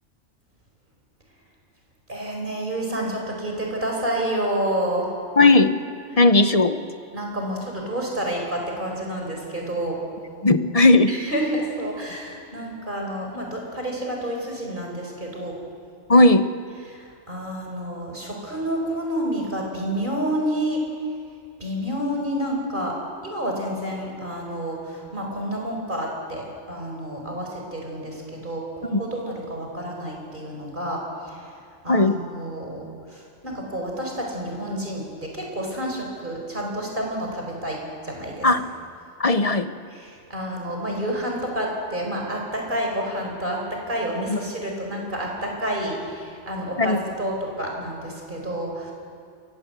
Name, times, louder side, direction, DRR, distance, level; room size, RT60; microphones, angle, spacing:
voice 1, 2.1-5.1 7.1-10.0 11.1-15.6 16.9-20.8 21.6-23.0 23.2-31.5 31.8-38.5 40.0-48.9, right 1 dB, 40° right, 0 dB, 5.0 m, -29 dB
voice 2, 5.4-5.8 6.2-6.8 10.4-11.1 16.1-16.5 28.9-29.0 31.9-32.2 38.4-38.6 39.2-39.7 44.3-44.4 46.8-47.0, left 2 dB, 35° left, 10 dB, 0.9 m, -16 dB
28.0 x 16.5 x 8.1 m, 2.3 s
omnidirectional pair, 1.2 m